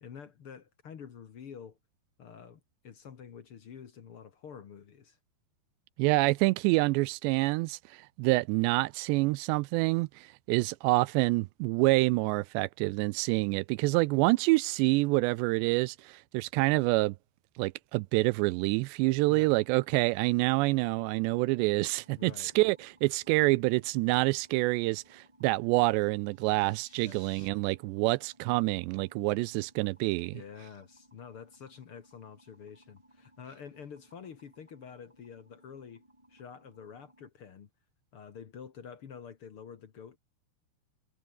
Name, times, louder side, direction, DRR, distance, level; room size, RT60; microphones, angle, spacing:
voice 1, 0.0-1.8 2.2-5.2 19.3-19.6 22.1-22.5 27.0-27.2 30.3-36.0 36.3-37.7 38.1-40.2, left 7 dB, 55° left, 1.5 m, -48 dB
voice 2, 6.0-17.2 17.6-30.4, right 22 dB, 85° right, 2.8 m, -27 dB
sound 1, 19.5-37.3, right 1 dB, 5° right, 5.5 m, -63 dB
sound 2, 26.2-27.5, left 1 dB, 10° left, 6.8 m, -59 dB
omnidirectional pair, 4.9 m